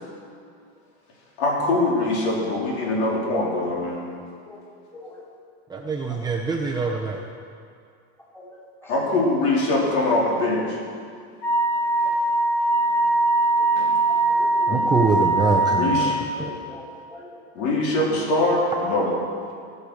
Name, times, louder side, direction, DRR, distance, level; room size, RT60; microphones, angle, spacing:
voice 1, 1.4-4.1 8.9-10.8 12.0-12.1 13.8-14.0 14.7-14.8 15.7-16.2 17.5-19.1, left 2 dB, 65° left, -3 dB, 4.1 m, -23 dB
voice 2, 5.7-7.2 14.7-16.5, right 4 dB, 10° right, -1 dB, 0.8 m, -24 dB
Wind instrument woodwind instrument, 11.4-16.2, right 2 dB, 45° left, 3.8 m, -21 dB
voice 3, 14.1-14.7 16.3-17.3, left 1 dB, 5° left, -5 dB, 3.4 m, -42 dB
18.0 x 6.8 x 6.5 m, 2.2 s
supercardioid pair, 145°, 34 cm